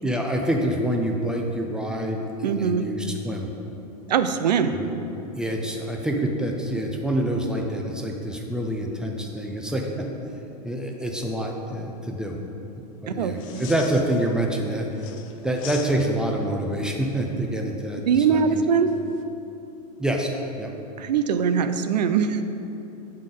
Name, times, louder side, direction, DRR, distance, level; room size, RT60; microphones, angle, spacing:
voice 1, 0.0-3.5 4.7-4.9 5.3-10.1 10.6-12.4 13.0-14.9 15.4-18.6 20.0-20.7, right 1 dB, 5° right, 1 dB, 0.5 m, -26 dB
voice 2, 2.4-2.9 4.1-4.8 13.1-13.6 18.1-18.9 21.0-22.4, right 7 dB, 80° right, 9 dB, 0.4 m, -22 dB
sound 1, 13.3-14.6 14.9-16.4 18.9-19.2, left 9 dB, 50° left, 0.5 m, -42 dB
7.5 x 3.6 x 3.8 m, 2.9 s
hypercardioid pair, 95°, 21 cm